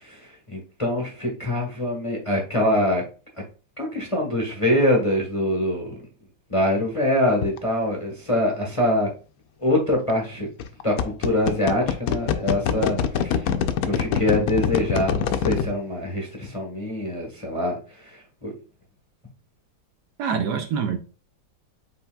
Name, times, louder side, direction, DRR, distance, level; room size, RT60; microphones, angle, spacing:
voice 1, 0.0-3.0 3.8-6.0 6.5-9.1 9.6-10.5 10.8-13.5 13.8-18.5, left 1 dB, 20° left, 0.9 m, -24 dB
sound 1, 7.4-7.6 9.9-10.1 10.6-15.7, left 8 dB, 75° left, 0.8 m, -23 dB
voice 2, 12.8-13.1 20.2-21.0, right 7 dB, 70° right, 1.2 m, -26 dB
5.4 x 4.2 x 2.2 m
omnidirectional pair, 2.1 m